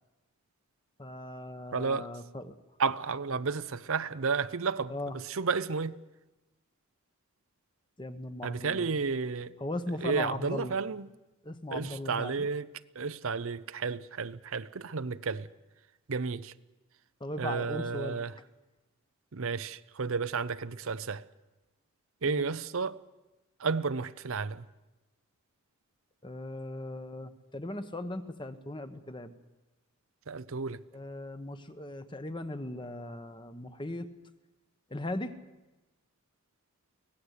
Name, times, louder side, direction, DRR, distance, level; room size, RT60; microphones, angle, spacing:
voice 1, 1.0-2.5 4.9-5.2 8.0-8.9 9.6-10.7 11.4-12.5 17.2-18.2 22.3-22.5 26.2-29.3 30.9-34.1 34.9-35.3, left 1 dB, 20° left, 1.1 m, -38 dB
voice 2, 1.7-2.1 2.8-6.0 8.4-9.5 10.0-11.1 11.7-12.7 13.0-15.5 16.1-16.5 17.4-18.3 19.3-21.2 22.2-23.0 23.6-24.7 30.3-30.8, right 5 dB, 65° right, 0.7 m, -32 dB
24.5 x 17.5 x 8.3 m
head